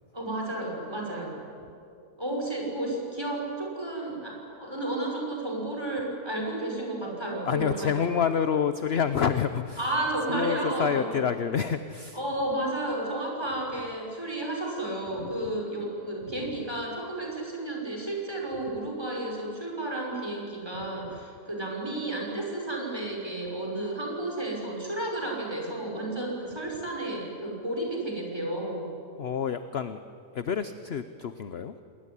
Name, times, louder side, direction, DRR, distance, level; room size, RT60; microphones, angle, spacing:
voice 1, 0.1-1.4 2.2-8.1 9.8-11.2 12.1-28.9, right 1 dB, 15° right, -1 dB, 5.8 m, -32 dB
voice 2, 7.5-9.8 10.3-12.2 15.2-15.5 29.2-30.0 30.3-31.8, left 7 dB, 50° left, 11 dB, 0.8 m, -28 dB
27.0 x 20.0 x 9.9 m, 2.6 s
omnidirectional pair, 1.8 m